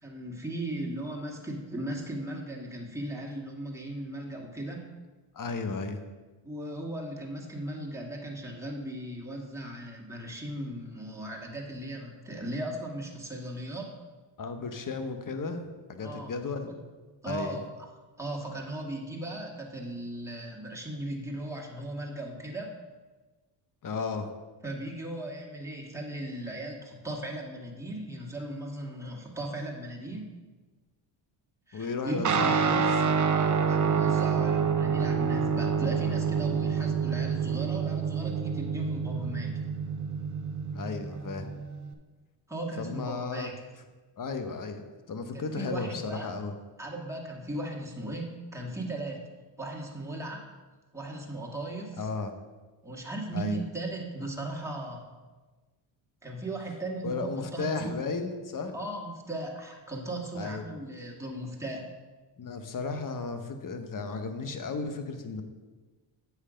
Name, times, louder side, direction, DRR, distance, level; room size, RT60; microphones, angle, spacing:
voice 1, 0.0-4.9 6.4-13.9 16.0-16.3 16.7-16.8 17.2-17.9 18.2-22.7 24.6-30.3 31.7-32.5 33.3-39.5 42.5-43.5 45.3-46.3 46.8-49.2 49.6-50.4 50.9-52.1 52.8-55.1 56.2-58.0 58.7-61.9, right 1 dB, 5° right, -2 dB, 2.0 m, -37 dB
voice 2, 5.3-6.0 14.4-15.6 15.9-16.7 17.2-17.6 23.8-24.3 31.7-33.1 40.7-41.5 42.8-43.5 44.2-46.5 52.0-52.3 53.3-53.6 57.0-58.8 60.3-60.6 62.4-65.4, left 4 dB, 40° left, 7 dB, 1.2 m, -34 dB
Guitar, 32.2-41.9, right 6 dB, 35° right, 0.9 m, -27 dB
8.1 x 5.8 x 5.1 m, 1.3 s
supercardioid pair, 70°, 49 cm